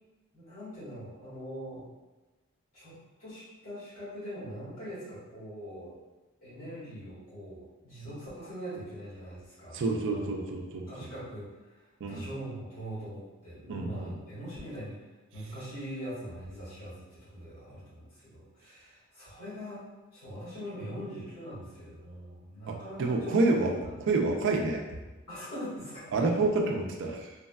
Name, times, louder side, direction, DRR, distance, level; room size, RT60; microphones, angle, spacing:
voice 1, 0.3-1.8 2.7-2.9 3.2-5.9 6.4-9.8 10.1-10.3 10.7-15.0 15.3-19.8 20.1-24.0 25.3-26.3, equal, 65° left, -10 dB, 1.4 m, -42 dB
voice 2, 9.7-10.9 12.0-12.2 13.7-14.1 22.7-23.7 24.0-24.8 26.1-27.3, right 3 dB, 60° right, 2 dB, 0.4 m, -28 dB
3.4 x 2.1 x 2.2 m, 1.2 s
head